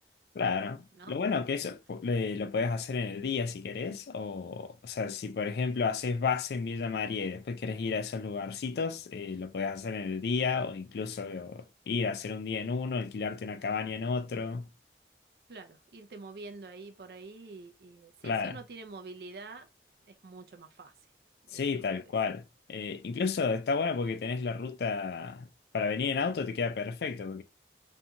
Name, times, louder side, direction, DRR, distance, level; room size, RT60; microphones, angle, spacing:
voice 1, 0.3-14.7 18.2-18.6 21.5-22.4 22.7-25.5 25.7-27.4, left 5 dB, 65° left, 0.3 m, -32 dB
voice 2, 15.5-19.7 20.1-20.9 21.4-21.9, right 3 dB, 60° right, 0.5 m, -47 dB
2.6 x 2.3 x 2.8 m
head